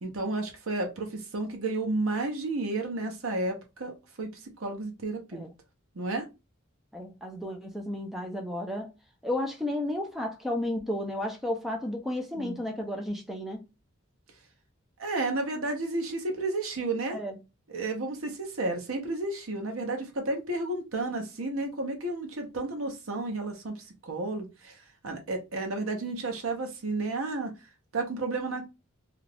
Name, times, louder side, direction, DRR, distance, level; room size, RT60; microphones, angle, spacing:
voice 1, 0.0-3.9 4.2-4.3 4.6-5.4 5.9-6.2 12.4-12.6 15.0-17.2 17.7-27.5 27.9-28.7, right 2 dB, 75° right, 0.8 m, -32 dB
voice 2, 6.9-8.9 9.2-13.6 17.1-17.4, left 1 dB, ahead, 0.5 m, -33 dB
2.5 x 2.3 x 3.3 m
head